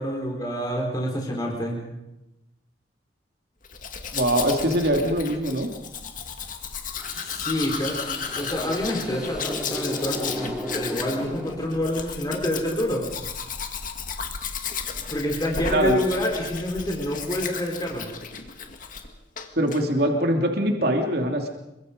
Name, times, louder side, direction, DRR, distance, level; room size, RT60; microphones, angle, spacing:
voice 1, 0.0-1.7 7.2-13.1 15.1-18.1, equal, 20° left, -1 dB, 4.3 m, -27 dB
Domestic sounds home sounds, 3.6-19.1 19.4-19.8, left 6 dB, 45° left, 2.1 m, -34 dB
voice 2, 4.1-5.7 15.7-16.0 19.6-21.5, equal, 60° right, 2 dB, 2.8 m, -22 dB
sound 1, 7.0-12.1, equal, 5° right, 5.8 m, -35 dB
27.5 x 24.0 x 5.3 m, 0.94 s
head